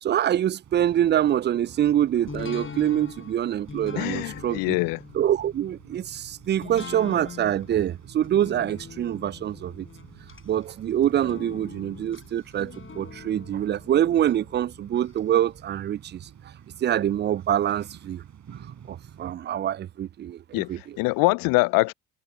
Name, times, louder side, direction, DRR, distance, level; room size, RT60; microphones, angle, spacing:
voice 1, 0.0-4.8 5.1-9.9 10.5-16.3 16.8-18.2 18.9-21.0, right 11 dB, 25° right, 0.5 m, -25 dB
sound 1, 0.6-19.3, right 9 dB, 45° right, 6.2 m, -49 dB
sound 2, 2.3-15.2 15.6-15.7, left 5 dB, 30° left, 6.7 m, -42 dB
voice 2, 4.0-5.0 20.5-21.9, left 26 dB, 55° left, 0.8 m, -24 dB
figure-of-eight pair, 50°, 40 cm